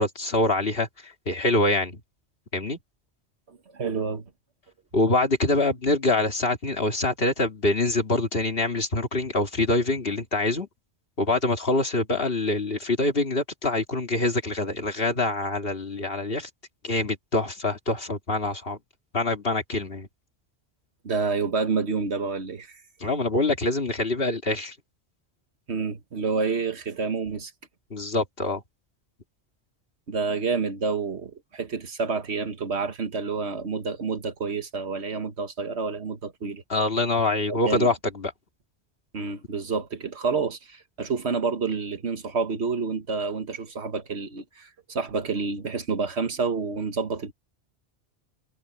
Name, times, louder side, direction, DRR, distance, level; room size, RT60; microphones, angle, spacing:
voice 1, 0.0-2.0 2.5-2.8 4.9-10.7 11.2-16.5 16.8-18.8 19.1-20.1 23.0-24.7 27.9-28.6 36.7-38.3, left 2 dB, 55° left, 2.7 m, -25 dB
voice 2, 3.5-4.3 21.0-22.8 25.7-27.5 30.1-36.6 37.5-37.9 39.1-47.3, right 4 dB, 70° right, 1.7 m, -29 dB
omnidirectional pair, 1.2 m